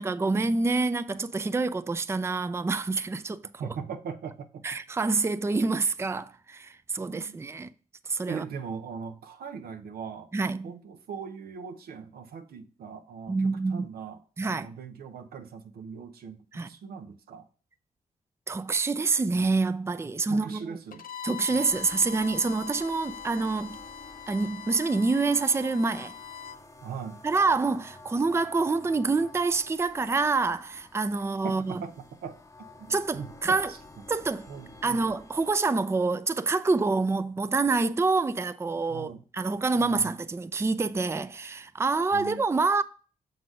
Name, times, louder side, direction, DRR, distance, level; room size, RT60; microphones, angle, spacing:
voice 1, 0.0-3.4 4.6-7.7 8.1-8.4 10.3-10.7 13.3-13.9 14.4-14.7 16.5-16.7 18.5-20.7 21.2-23.8 24.3-26.2 27.2-31.8 32.9-33.7 34.1-34.5 34.8-42.8, right 3 dB, 15° right, 0.4 m, -27 dB
voice 2, 3.6-4.6 7.1-7.4 8.3-10.3 10.6-17.5 20.3-21.0 21.5-21.7 26.8-27.2 31.4-32.0 32.2-32.4 32.8-33.8 34.5-35.1 38.9-39.2 39.8-40.2 42.1-42.4, right 6 dB, 90° right, 0.7 m, -40 dB
Bowed string instrument, 20.9-26.6, left 7 dB, 65° left, 0.6 m, -42 dB
sound 1, 21.7-35.6, left 2 dB, 20° left, 0.8 m, -51 dB
6.5 x 4.0 x 4.8 m
cardioid pair, 65°, 15 cm